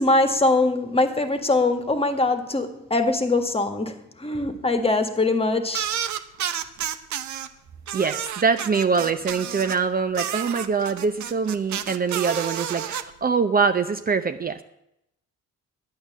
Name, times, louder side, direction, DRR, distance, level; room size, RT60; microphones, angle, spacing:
voice 1, 0.0-5.9, left 2 dB, 20° left, 7 dB, 1.6 m, -22 dB
sound 1, 5.7-7.5 7.9-9.8 10.1-13.0, right 10 dB, 70° right, 0.9 m, -30 dB
voice 2, 7.9-14.6, right 5 dB, 30° right, 9 dB, 0.7 m, -24 dB
11.5 x 8.8 x 7.3 m, 0.82 s
cardioid pair, 90°, 30 cm